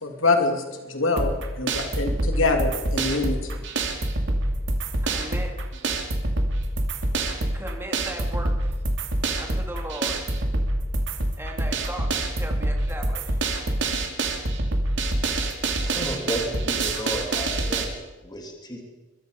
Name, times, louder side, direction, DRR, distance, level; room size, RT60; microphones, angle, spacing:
voice 1, 0.0-3.5, left 3 dB, 80° left, 4 dB, 3.1 m, -25 dB
sound 1, 1.2-17.8, right 2 dB, 65° right, 2.8 m, -26 dB
voice 2, 5.0-5.5 7.5-8.5 9.4-10.2 11.4-13.4, right 1 dB, 10° right, 2 dB, 3.1 m, -37 dB
voice 3, 15.4-18.8, equal, 20° left, 2 dB, 3.2 m, -33 dB
23.5 x 22.5 x 5.4 m, 1.2 s
head